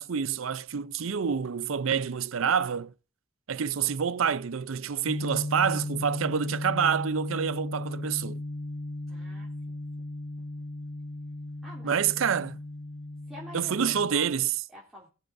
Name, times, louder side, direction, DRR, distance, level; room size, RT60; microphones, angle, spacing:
voice 1, 0.0-2.9 3.5-8.4 11.8-12.6 13.5-14.5, right 7 dB, 90° right, 0.6 m, -27 dB
sound 1, 5.1-14.1, left 1 dB, 85° left, 1.2 m, -36 dB
voice 2, 9.1-10.1 10.4-10.6 11.6-11.9 13.3-14.4 14.7-15.1, equal, ahead, 3.1 m, -48 dB
20.5 x 7.7 x 2.6 m
head